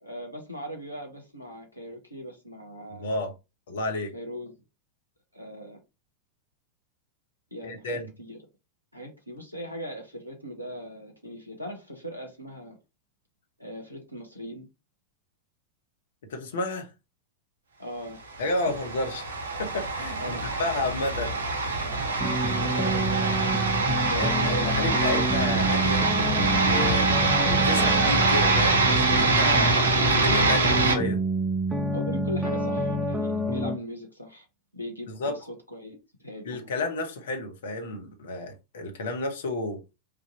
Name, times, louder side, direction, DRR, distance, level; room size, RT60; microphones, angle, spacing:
voice 1, 0.0-3.2 4.1-4.5 5.3-5.8 7.5-8.4 8.9-12.8 13.6-14.7 17.8-18.2 18.7-18.8 20.2-20.6 22.1-23.7 24.1-25.0 26.8-27.3 31.9-34.5 34.7-36.6, equal, 90° left, 0.9 m, -39 dB
voice 2, 3.0-3.3 3.7-4.1 7.6-8.1 16.3-16.9 18.4-19.2 19.6-21.4 24.1-26.1 26.6-27.0 27.4-31.2 35.1-35.4 36.4-39.8, left 2 dB, 60° left, 0.9 m, -31 dB
sound 1, 18.4-31.0, right 3 dB, 60° right, 0.9 m, -24 dB
sound 2, 22.2-33.8, right 1 dB, 5° right, 0.6 m, -28 dB
3.4 x 2.4 x 4.2 m
figure-of-eight pair, 90°, 0 cm